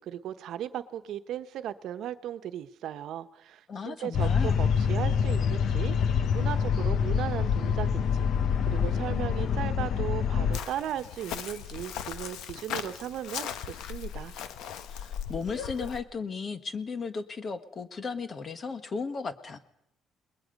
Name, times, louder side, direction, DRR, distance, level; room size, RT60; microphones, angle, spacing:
voice 1, 0.0-8.3 8.7-14.3, right 11 dB, 70° right, 10 dB, 1.1 m, -37 dB
voice 2, 3.7-4.6 14.9-19.6, left 5 dB, 35° left, 10 dB, 1.5 m, -35 dB
sound 1, 4.1-10.6, left 7 dB, 60° left, 1.0 m, -26 dB
Chirp tweet, 10.5-16.0, left 9 dB, 90° left, 1.2 m, -38 dB
28.5 x 21.0 x 5.4 m, 0.78 s
cardioid pair, 135°, 0 cm